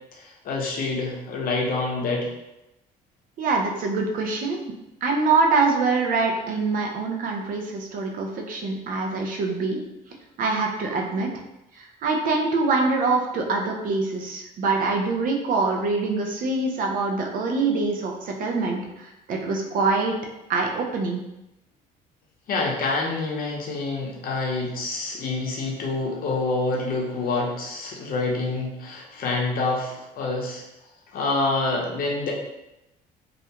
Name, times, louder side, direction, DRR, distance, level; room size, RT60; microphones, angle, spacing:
voice 1, 0.1-2.3 22.5-30.6 31.1-32.3, left 3 dB, 60° left, -1 dB, 0.7 m, -27 dB
voice 2, 3.4-4.6 5.0-9.8 10.4-11.3 11.7-20.2 20.5-21.2, right 3 dB, 55° right, 1 dB, 0.5 m, -24 dB
2.4 x 2.1 x 2.8 m, 0.90 s
cardioid pair, 110°, 17 cm